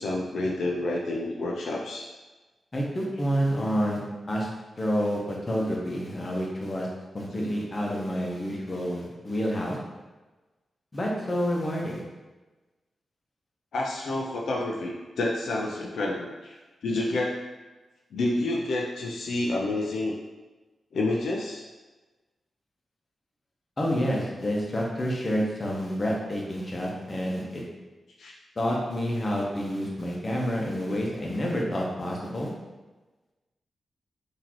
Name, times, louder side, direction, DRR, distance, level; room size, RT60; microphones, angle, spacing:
voice 1, 0.0-2.1 13.7-17.3 18.1-20.2 20.9-21.6 28.2-28.3, left 2 dB, 85° left, -2 dB, 0.4 m, -29 dB
voice 2, 2.7-4.0 4.3-4.5 4.8-6.9 7.1-9.8 10.9-12.0 23.8-27.6 28.6-32.5, equal, 35° left, -2 dB, 0.9 m, -28 dB
3.8 x 2.7 x 3.0 m, 1.2 s
cardioid pair, 65°, 0 cm